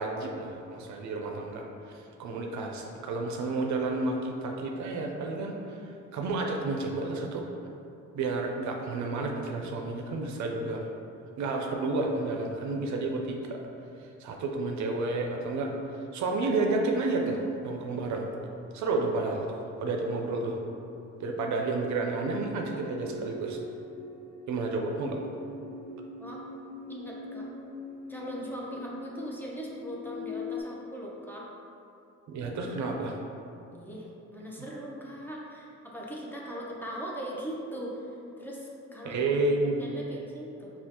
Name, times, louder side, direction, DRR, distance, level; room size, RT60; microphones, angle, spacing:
voice 1, 0.0-7.5 8.1-10.9 11.4-13.6 14.0-18.3 18.7-20.6 21.2-23.6 24.5-25.2 32.3-33.2 39.0-39.9, right 3 dB, 70° right, 1 dB, 0.5 m, -31 dB
sound 1, 22.4-30.6, left 2 dB, 35° left, 1.2 m, -41 dB
voice 2, 26.9-27.5 28.1-31.5 33.7-39.3 39.8-40.7, equal, 5° left, -4 dB, 0.7 m, -40 dB
5.4 x 2.4 x 2.9 m, 2.8 s
cardioid pair, 90°, 30 cm